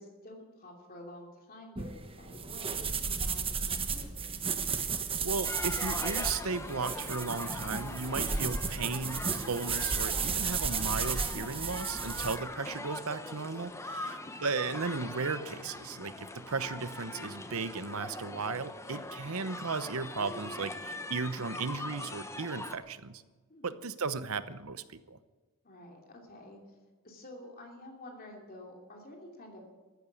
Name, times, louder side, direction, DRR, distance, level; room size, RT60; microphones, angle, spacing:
voice 1, 0.0-4.5 13.9-14.3 23.5-23.9 25.6-26.8 27.0-29.6, left 1 dB, 45° left, 1 dB, 2.9 m, -50 dB
sound 1, 1.8-12.4, right 5 dB, 25° right, 1.2 m, -34 dB
voice 2, 5.2-23.2 23.6-25.2, right 4 dB, 75° right, 13 dB, 0.9 m, -36 dB
sound 2, 5.4-22.8, left 2 dB, 15° left, 0.9 m, -42 dB
14.5 x 11.0 x 8.4 m, 1.3 s
head